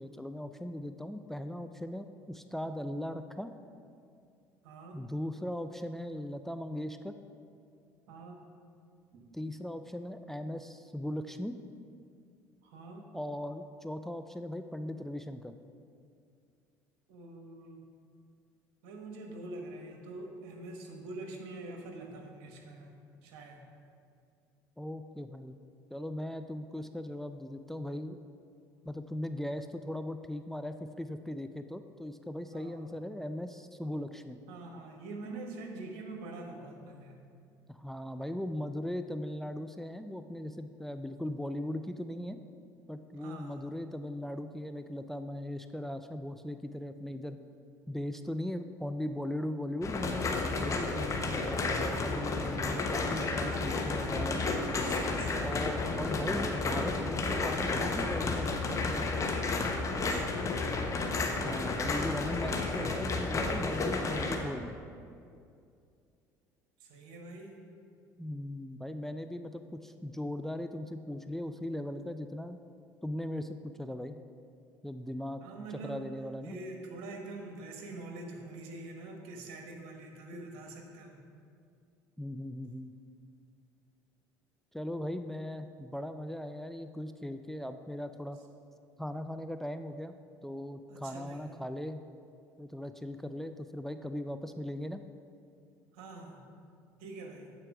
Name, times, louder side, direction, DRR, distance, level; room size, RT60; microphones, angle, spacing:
voice 1, 0.0-3.5 4.9-7.1 9.3-11.6 13.1-15.5 24.8-25.6 25.9-28.2 28.8-34.4 37.7-42.4 42.9-47.4 47.9-54.5 55.4-59.0 61.4-64.7 68.2-72.6 73.0-74.2 74.8-75.4 75.8-76.6 82.2-82.9 84.7-88.4 89.0-92.0 92.6-95.0, left 1 dB, 5° left, 9 dB, 0.4 m, -38 dB
voice 2, 4.6-5.0 8.1-8.5 9.1-9.2 12.6-13.1 17.1-17.9 18.8-22.9 23.2-23.6 32.5-32.9 34.5-37.2 43.2-43.6 54.7-55.7 59.9-60.6 66.8-67.5 75.4-76.1 76.4-81.2 90.9-91.5 95.9-96.4 97.0-97.5, right 2 dB, 70° right, 2 dB, 1.3 m, -45 dB
sound 1, 49.8-64.4, left 3 dB, 35° left, 1.0 m, -32 dB
8.4 x 4.4 x 5.9 m, 2.4 s
hypercardioid pair, 70°, 9 cm